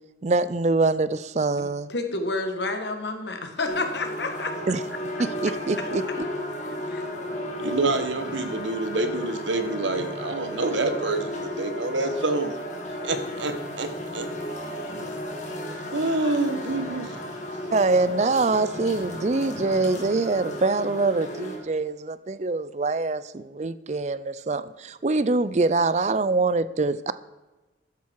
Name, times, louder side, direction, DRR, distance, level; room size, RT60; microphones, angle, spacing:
voice 1, 0.2-1.9 4.7-4.8 5.2-6.3 17.7-27.1, right 3 dB, 35° right, 15 dB, 0.5 m, -24 dB
voice 2, 1.6-4.7 6.9-7.0, left 2 dB, 65° left, 6 dB, 1.9 m, -30 dB
sound 1, 3.7-21.6, equal, 40° left, 2.6 m, -34 dB
voice 3, 7.6-12.5 13.0-14.3 15.9-17.2, right 2 dB, 80° right, 8 dB, 1.5 m, -27 dB
13.0 x 10.5 x 4.7 m, 1.1 s
head